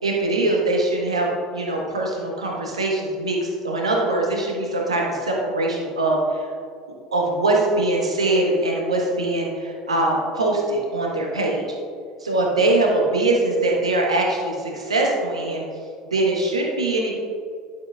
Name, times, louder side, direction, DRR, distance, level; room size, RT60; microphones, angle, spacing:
voice 1, 0.0-6.5 7.1-11.6 12.2-15.6 16.1-17.1, right 2 dB, 80° right, -1 dB, 1.2 m, -22 dB
11.0 x 6.7 x 2.3 m, 2.3 s
figure-of-eight pair, 70°, 3 cm